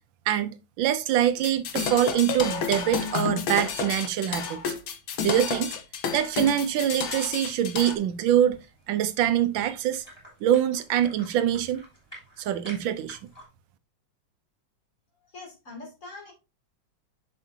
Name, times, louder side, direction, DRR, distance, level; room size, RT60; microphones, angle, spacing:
voice 1, 0.3-4.7 5.2-5.7 6.1-8.6 8.9-10.0 10.4-11.8 12.4-13.2, right 10 dB, 75° right, 1.3 m, -24 dB
sound 1, 1.4-7.9, left 7 dB, 85° left, 1.8 m, -31 dB
sound 2, 8.1-13.5, equal, 10° left, 3.4 m, -50 dB
voice 2, 15.2-16.3, left 3 dB, 40° left, 3.0 m, -43 dB
7.2 x 6.9 x 2.7 m
omnidirectional pair, 2.2 m